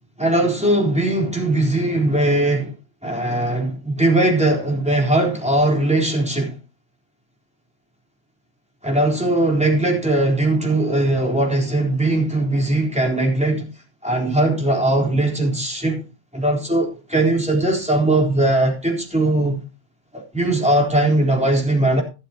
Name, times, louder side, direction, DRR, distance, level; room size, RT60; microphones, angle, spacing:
voice 1, 0.2-2.7 3.0-6.6 8.8-13.7 14.0-16.0 16.3-19.6 20.1-22.0, right 1 dB, 5° right, 3.9 m, -19 dB
13.5 x 13.0 x 2.9 m
omnidirectional pair, 1.8 m